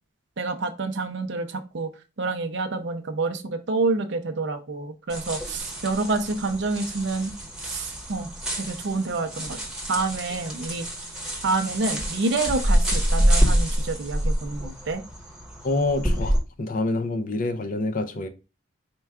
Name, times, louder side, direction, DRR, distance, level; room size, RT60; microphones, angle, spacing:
voice 1, 0.4-1.9 2.2-7.3 7.6-9.6 9.9-10.8 11.4-15.0, right 3 dB, 55° right, 0.5 m, -28 dB
sound 1, 5.1-16.4, equal, 5° right, 0.8 m, -27 dB
voice 2, 15.6-18.3, left 2 dB, 40° left, 0.4 m, -27 dB
4.5 x 2.2 x 3.5 m
head